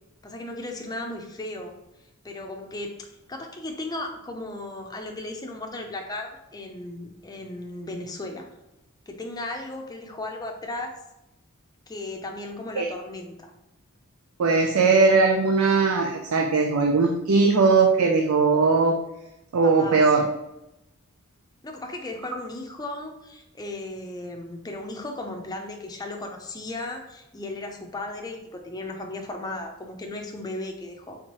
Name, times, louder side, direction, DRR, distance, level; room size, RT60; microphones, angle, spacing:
voice 1, 0.2-1.8 2.2-3.0 3.3-8.5 9.1-10.9 11.9-13.5 19.6-20.0 21.6-31.2, left 2 dB, 20° left, 2 dB, 0.5 m, -36 dB
voice 2, 14.4-18.9 19.5-20.3, right 4 dB, 85° right, 2 dB, 0.5 m, -19 dB
4.4 x 3.6 x 3.0 m, 0.91 s
head